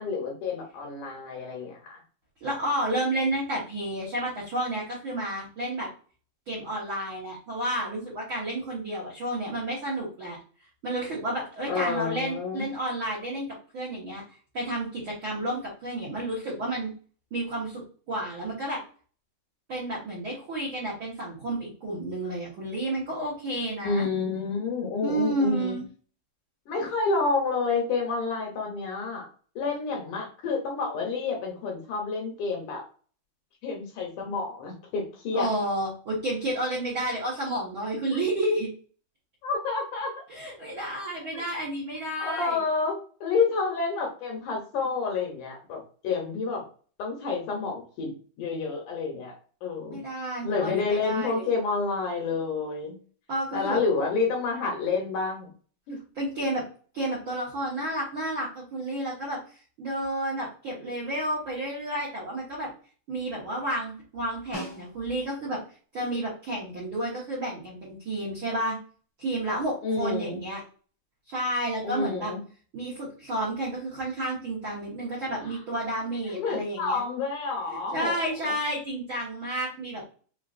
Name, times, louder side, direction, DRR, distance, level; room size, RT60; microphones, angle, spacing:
voice 1, 0.0-2.0 11.7-12.7 23.8-25.8 26.7-29.3 29.6-32.8 33.6-35.5 39.4-40.1 41.3-41.5 42.2-46.6 47.0-48.1 48.4-49.3 49.6-50.0 50.4-53.0 53.5-55.5 55.9-56.0 69.8-70.4 71.8-72.4 75.4-75.6 76.3-78.5, left 4 dB, 70° left, 0 dB, 2.0 m, -29 dB
voice 2, 2.4-5.9 6.5-10.4 10.8-13.5 13.7-14.2 14.5-16.9 17.3-17.8 18.1-18.8 19.7-24.1 25.0-25.9 35.3-38.7 40.3-42.6 49.9-51.5 53.3-53.8 56.1-56.6 56.9-59.4 59.8-62.7 63.1-65.6 65.9-68.8 69.2-70.6 71.3-72.3 72.7-77.0 77.7-80.0, right 1 dB, 80° right, -6 dB, 1.1 m, -31 dB
Snare drum, 64.5-65.4 69.9-70.0, equal, 35° right, 0.5 m, -40 dB
5.5 x 2.5 x 2.5 m, 0.41 s
omnidirectional pair, 4.2 m